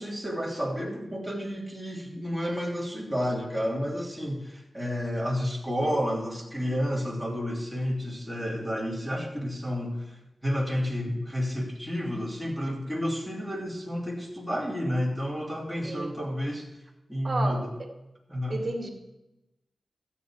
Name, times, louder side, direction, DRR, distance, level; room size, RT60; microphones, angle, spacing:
voice 1, 0.0-16.7 17.1-17.7 18.3-18.6, equal, 5° left, -3 dB, 3.3 m, -30 dB
voice 2, 15.8-16.1 17.2-17.9 18.5-18.9, right 2 dB, 40° right, 4 dB, 2.1 m, -32 dB
13.5 x 8.3 x 4.9 m, 0.96 s
cardioid pair, 65°, 0 cm